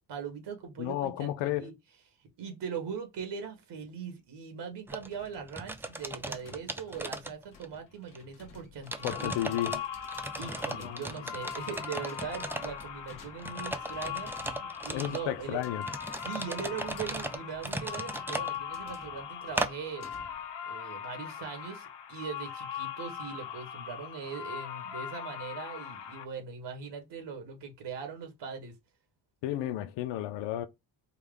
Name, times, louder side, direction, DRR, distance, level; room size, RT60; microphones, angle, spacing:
voice 1, 0.0-1.7 2.4-9.4 10.3-15.7 16.2-20.1 20.7-28.8, right 6 dB, 70° right, 1.7 m, -40 dB
voice 2, 0.8-1.7 9.0-9.8 10.8-11.0 14.9-15.8 29.4-30.7, left 13 dB, 90° left, 0.6 m, -32 dB
sound 1, 4.9-5.1 5.5-7.8 8.1-8.2 8.9-9.8 10.1-12.8 13.4-15.2 15.8-18.5 19.6-19.7, right 2 dB, 5° right, 0.3 m, -37 dB
sound 2, 5.1-20.5, left 4 dB, 50° left, 1.3 m, -55 dB
sound 3, 8.9-26.3, left 8 dB, 75° left, 1.2 m, -40 dB
4.7 x 2.2 x 3.5 m
cardioid pair, 120°, 43 cm